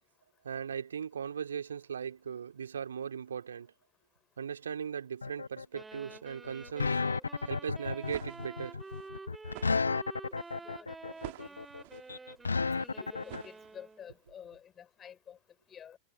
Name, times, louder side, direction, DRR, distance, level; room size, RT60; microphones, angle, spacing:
voice 1, 0.4-3.7 4.4-7.0 7.4-8.8, right 7 dB, 70° right, 3.0 m, -38 dB
sound 1, 5.2-13.4, left 4 dB, 75° left, 1.1 m, -33 dB
sound 2, 5.7-14.1, right 3 dB, 10° right, 2.7 m, -49 dB
sound 3, 7.8-14.1, right 21 dB, 50° right, 3.4 m, -50 dB
voice 2, 10.6-11.6 12.6-15.4 15.7-16.0, left 9 dB, 25° left, 5.5 m, -51 dB
figure-of-eight pair, 90°, 0 cm